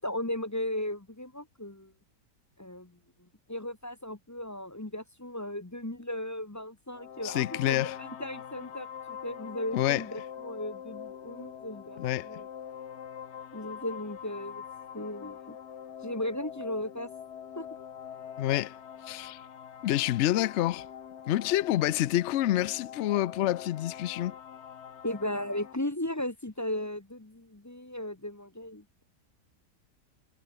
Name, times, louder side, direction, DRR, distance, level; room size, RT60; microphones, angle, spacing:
voice 1, 0.0-1.9 2.6-3.0 3.5-12.5 13.5-14.6 14.9-15.6 16.0-17.1 17.6-17.7 25.0-29.0, left 1 dB, 15° left, 0.9 m, -36 dB
sound 1, 6.9-25.7, left 8 dB, 50° left, 1.0 m, -44 dB
voice 2, 7.2-8.0 9.7-10.0 12.0-12.3 18.4-18.8 19.1-19.4 19.8-20.9 21.3-24.4, left 14 dB, 85° left, 0.6 m, -27 dB
omnidirectional pair, 1.8 m